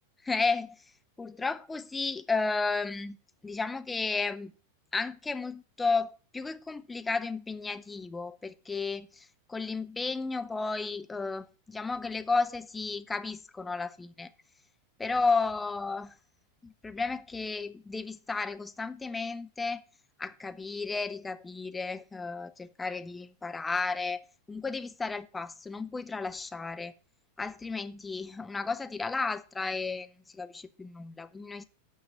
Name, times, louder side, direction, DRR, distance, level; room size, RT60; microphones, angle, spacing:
voice 1, 0.2-0.7 1.2-3.2 3.4-4.5 4.9-14.3 15.0-16.1 16.6-19.8 20.2-24.2 24.5-26.9 27.4-31.6, left 4 dB, 10° left, 0.6 m, -33 dB
8.6 x 5.7 x 6.7 m
figure-of-eight pair, 90°, 0 cm